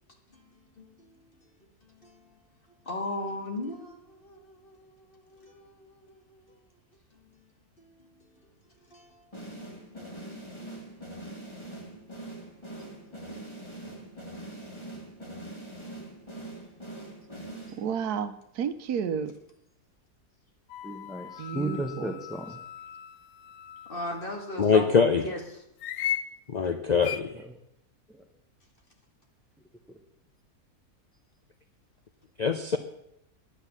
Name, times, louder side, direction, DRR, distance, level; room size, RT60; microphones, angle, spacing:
voice 1, 0.3-1.2 1.8-2.2 2.9-6.1 6.4-6.5 7.8-8.4 8.9-10.7 12.5-13.0 14.4-14.7 16.0-16.1 23.9-25.6, left 1 dB, 35° left, 2.0 m, -40 dB
sound 1, 9.3-18.1, right 1 dB, 20° left, 2.2 m, -43 dB
voice 2, 17.8-19.3 21.4-22.1, right 7 dB, 80° right, 1.3 m, -31 dB
sound 2, 20.7-24.5 25.8-26.3 27.0-27.2, left 11 dB, 75° left, 1.0 m, -37 dB
voice 3, 20.8-22.6 27.4-27.6 28.1-28.2 29.9-30.0, right 1 dB, ahead, 0.6 m, -35 dB
voice 4, 24.6-25.2 26.5-27.4 32.4-32.8, left 5 dB, 55° left, 0.4 m, -23 dB
9.9 x 9.1 x 7.1 m
omnidirectional pair, 1.7 m